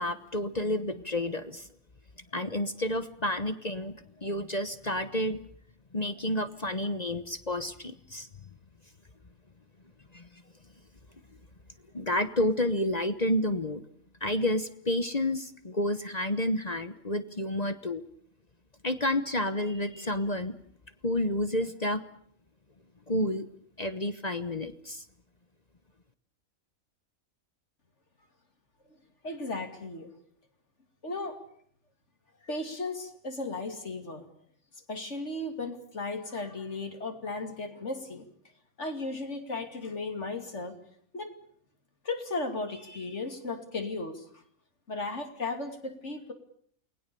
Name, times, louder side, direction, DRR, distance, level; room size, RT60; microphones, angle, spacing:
voice 1, 0.0-1.6 2.3-3.9 4.2-5.4 5.9-8.3 10.1-10.2 11.9-13.8 14.2-18.0 18.8-20.5 21.0-22.0 23.1-23.4 23.8-25.0, left 1 dB, 30° left, 11 dB, 1.2 m, -30 dB
voice 2, 29.2-30.1 31.0-31.4 32.4-34.3 34.9-38.3 38.8-40.8 41.1-41.3 42.0-44.4 44.9-46.3, left 3 dB, 55° left, 6 dB, 2.9 m, -35 dB
29.0 x 20.5 x 6.9 m, 0.62 s
omnidirectional pair, 1.5 m